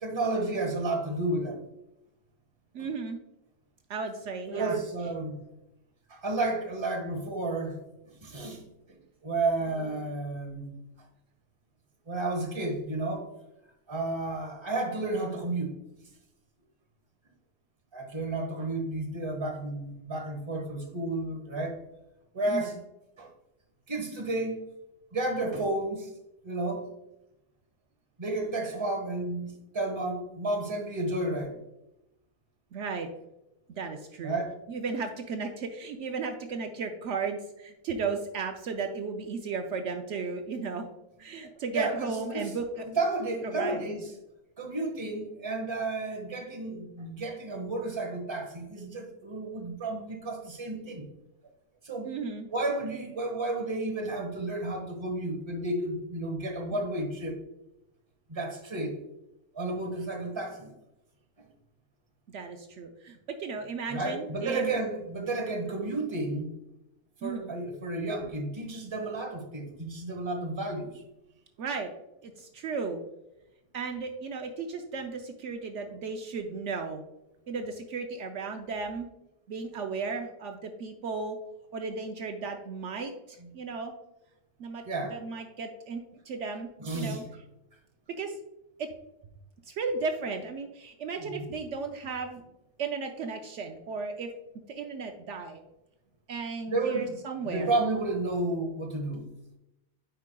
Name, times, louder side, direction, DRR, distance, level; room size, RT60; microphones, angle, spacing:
voice 1, 0.0-1.6 2.8-2.9 4.5-5.4 6.1-7.8 8.1-8.6 9.2-10.7 12.1-13.3 13.9-15.8 17.9-21.8 22.3-22.8 23.2-23.3 23.9-24.6 25.1-26.1 26.4-26.9 28.2-31.6 34.2-34.6 41.4-42.5 42.8-44.1 44.6-51.0 51.8-52.1 52.5-57.4 58.3-59.0 59.5-60.7 63.9-66.5 67.2-71.0 75.9-76.0 83.4-83.5 84.8-85.2 86.8-87.2 91.2-91.5 96.7-97.1 97.4-99.2, right 2 dB, 25° right, 3 dB, 1.0 m, -32 dB
voice 2, 2.7-3.2 3.9-4.8 22.5-22.7 32.7-33.1 33.7-34.4 34.7-40.9 41.2-42.9 43.4-43.8 52.0-52.5 62.3-64.6 67.2-67.5 71.6-71.9 72.2-73.0 73.7-77.0 77.5-79.1 79.5-81.4 81.7-83.9 84.6-84.8 85.1-86.7 86.9-87.2 88.2-88.4 88.8-88.9 89.7-92.4 92.8-94.3 94.7-95.6 96.3-97.7, right 4 dB, 70° right, 5 dB, 0.9 m, -35 dB
9.1 x 4.7 x 2.2 m, 0.92 s
omnidirectional pair, 1.3 m